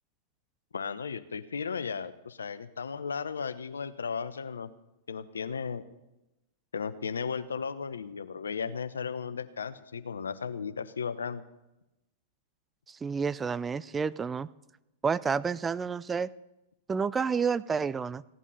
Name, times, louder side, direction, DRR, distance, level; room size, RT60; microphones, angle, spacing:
voice 1, 0.7-4.7 5.1-5.8 6.7-11.4, left 6 dB, 80° left, 14 dB, 0.8 m, -35 dB
voice 2, 12.9-14.5 15.0-16.3 16.9-18.2, right 5 dB, 20° right, 18 dB, 0.4 m, -29 dB
16.5 x 11.0 x 5.6 m, 0.95 s
hypercardioid pair, 105°, 0 cm